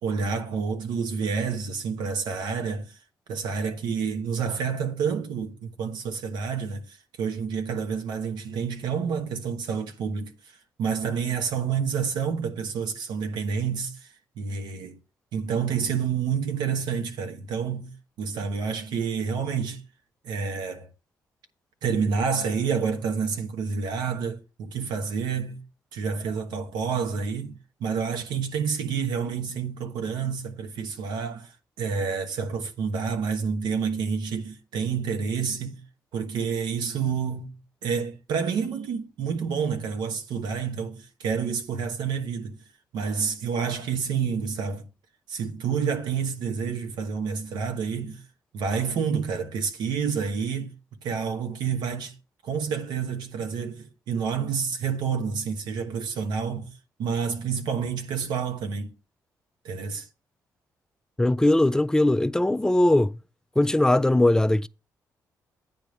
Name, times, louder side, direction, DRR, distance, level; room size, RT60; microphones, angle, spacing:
voice 1, 0.0-3.0 3.3-10.3 10.8-14.1 14.4-14.9 15.3-19.8 20.2-20.9 21.8-25.6 25.9-31.5 31.8-35.8 36.1-42.6 42.9-44.9 45.3-48.2 48.5-50.7 51.0-52.1 52.4-56.7 57.0-58.9 59.6-60.1, right 6 dB, 85° right, 1.1 m, -29 dB
voice 2, 61.2-63.1 63.6-64.7, left 1 dB, 10° left, 0.3 m, -20 dB
9.2 x 3.5 x 6.5 m
cardioid pair, 80°, 7 cm